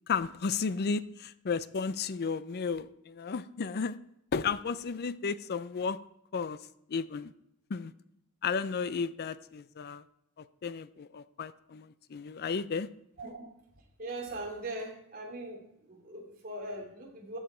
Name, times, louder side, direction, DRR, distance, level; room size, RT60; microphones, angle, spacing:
voice 1, 0.1-4.0 4.3-6.0 6.3-6.6 6.9-7.3 7.7-7.9 8.4-10.0 10.4-12.9, left 5 dB, 45° left, 16 dB, 0.5 m, -33 dB
voice 2, 14.0-15.6 15.9-17.4, right 2 dB, 40° right, -1 dB, 2.9 m, -40 dB
13.0 x 7.3 x 4.4 m, 0.79 s
head